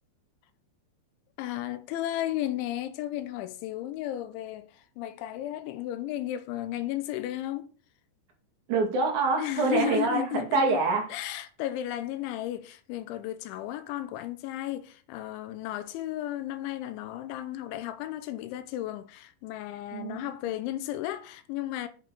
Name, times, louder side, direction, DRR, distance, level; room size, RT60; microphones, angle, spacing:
voice 1, 1.4-7.7 9.4-10.8 11.1-21.9, left 13 dB, 90° left, 3.1 m, -34 dB
voice 2, 8.7-11.1 19.9-20.3, right 3 dB, 50° right, 3.1 m, -26 dB
8.7 x 6.1 x 4.9 m
omnidirectional pair, 5.4 m